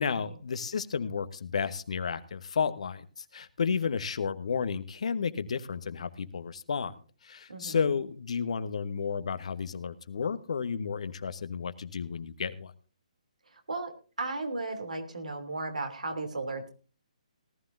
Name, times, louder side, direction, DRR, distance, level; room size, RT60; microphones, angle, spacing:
voice 1, 0.0-12.7, left 6 dB, 60° left, 12 dB, 1.2 m, -32 dB
voice 2, 14.2-16.7, right 3 dB, 75° right, 6 dB, 3.1 m, -35 dB
18.5 x 13.0 x 2.7 m, 0.38 s
figure-of-eight pair, 140°, 4 cm